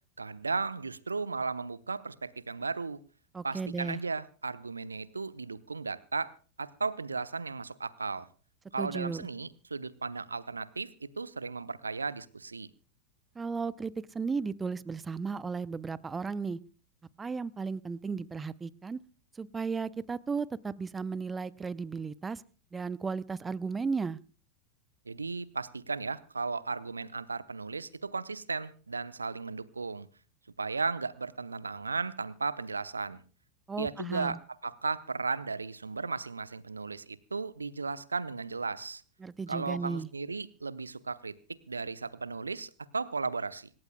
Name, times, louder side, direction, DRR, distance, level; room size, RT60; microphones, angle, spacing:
voice 1, 0.2-3.0 3.4-8.3 8.7-12.7 25.1-30.1 30.6-33.2 33.8-39.0 39.5-41.4 41.7-43.7, right 4 dB, 75° right, 17 dB, 0.8 m, -35 dB
voice 2, 3.3-4.0 8.8-9.3 13.3-16.6 17.2-19.0 19.3-22.4 22.7-24.2 33.7-34.4 39.2-40.1, right 5 dB, 15° right, 21 dB, 0.6 m, -35 dB
26.5 x 14.0 x 2.3 m, 0.39 s
figure-of-eight pair, 90°, 0 cm